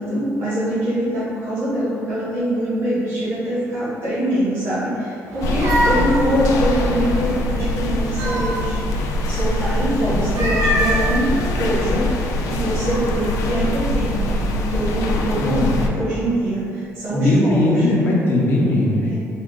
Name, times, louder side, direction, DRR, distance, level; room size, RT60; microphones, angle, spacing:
voice 1, 0.0-8.8 9.3-12.1 12.5-14.2 14.5-17.8 19.1-19.2, right 1 dB, 45° right, -13 dB, 1.3 m, -23 dB
sound 1, 5.3-7.4 7.8-9.0 10.2-12.0, equal, 80° right, 0.6 m, -25 dB
sound 2, 5.4-15.9, left 1 dB, 75° left, 0.4 m, -23 dB
voice 2, 15.4-15.8 17.1-19.1, left 1 dB, 40° left, -4 dB, 0.7 m, -18 dB
3.6 x 2.3 x 3.7 m, 2.5 s
cardioid pair, 170°, 6 cm